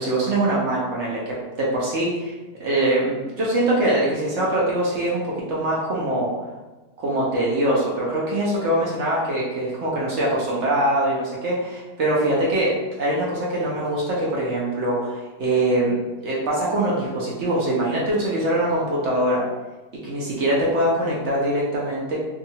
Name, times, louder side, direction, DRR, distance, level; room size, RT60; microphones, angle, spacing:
voice 1, 0.0-6.3 7.0-19.4 20.0-22.2, right 1 dB, 60° right, -5 dB, 0.8 m, -23 dB
2.7 x 2.4 x 2.7 m, 1.2 s
omnidirectional pair, 1.6 m